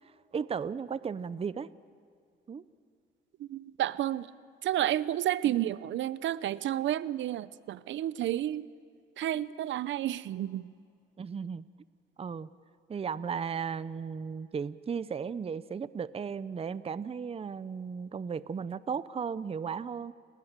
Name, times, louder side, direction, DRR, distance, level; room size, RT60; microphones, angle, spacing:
voice 1, 0.3-1.7 2.5-2.6 5.4-5.6 11.2-11.6 12.2-12.5 12.9-20.1, right 6 dB, 30° right, 17 dB, 0.6 m, -35 dB
voice 2, 3.4-4.3 4.6-8.7 9.2-10.7, right 12 dB, 70° right, 18 dB, 0.7 m, -31 dB
29.5 x 19.0 x 7.5 m, 2.3 s
cardioid pair, 90°, 20 cm